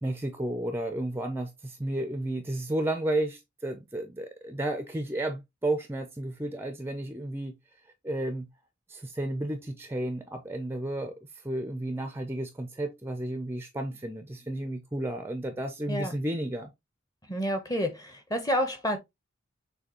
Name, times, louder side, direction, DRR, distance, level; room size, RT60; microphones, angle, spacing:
voice 1, 0.0-7.6 8.0-8.5 8.9-11.2 11.4-16.7, right 1 dB, 10° right, 0.5 m, -32 dB
voice 2, 17.3-19.0, equal, 20° left, 0.9 m, -29 dB
6.5 x 2.7 x 3.0 m
head